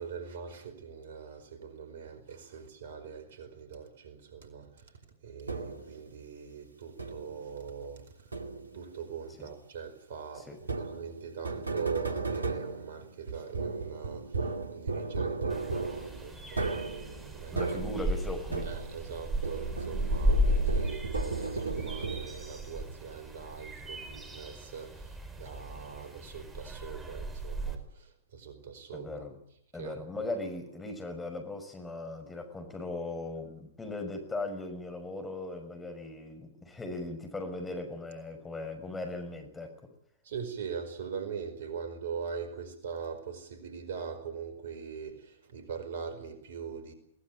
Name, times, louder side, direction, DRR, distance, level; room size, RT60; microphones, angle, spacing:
voice 1, 0.0-8.4 8.7-17.8 18.6-29.3 29.8-29.9 40.2-46.9, right 6 dB, 60° right, 4.8 m, -42 dB
sound 1, 5.5-6.0 7.0-7.5 8.3-8.9 10.6-19.1 19.4-22.6, right 4 dB, 80° right, 2.3 m, -35 dB
sound 2, 15.5-27.7, equal, 10° right, 4.8 m, -34 dB
voice 2, 17.5-18.7 28.9-29.3 29.7-39.7, left 2 dB, 10° left, 5.9 m, -38 dB
21.5 x 19.5 x 9.1 m
figure-of-eight pair, 100°, 0 cm